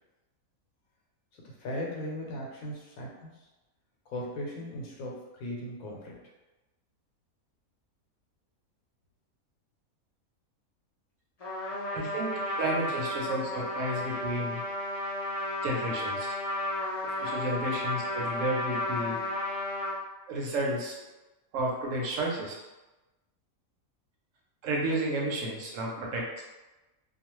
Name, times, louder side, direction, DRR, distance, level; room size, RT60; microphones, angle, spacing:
voice 1, 1.3-3.3 4.1-6.2, left 1 dB, 85° left, -2 dB, 1.1 m, -38 dB
Trumpet, 11.4-20.0, left 1 dB, 50° left, 0.4 m, -33 dB
voice 2, 11.9-14.6 15.6-16.3 17.2-19.2 20.3-20.9 21.5-22.5 24.6-26.4, right 1 dB, 70° right, -2 dB, 0.9 m, -32 dB
2.4 x 2.3 x 2.9 m, 1.1 s
omnidirectional pair, 1.5 m